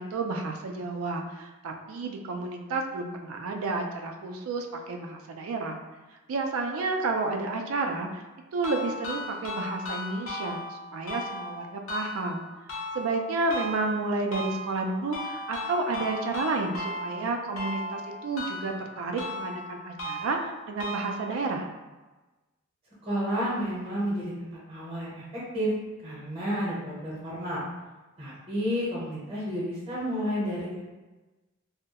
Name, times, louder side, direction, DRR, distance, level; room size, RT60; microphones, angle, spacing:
voice 1, 0.0-5.8 6.3-8.2 8.5-12.4 12.9-20.4 20.7-21.7, right 3 dB, 85° right, 3 dB, 0.3 m, -31 dB
sound 1, 8.6-21.6, left 1 dB, 85° left, 0.6 m, -37 dB
voice 2, 23.0-25.7 26.0-27.6 28.2-30.8, equal, 30° right, -7 dB, 0.7 m, -31 dB
2.2 x 2.0 x 2.8 m, 1.2 s
head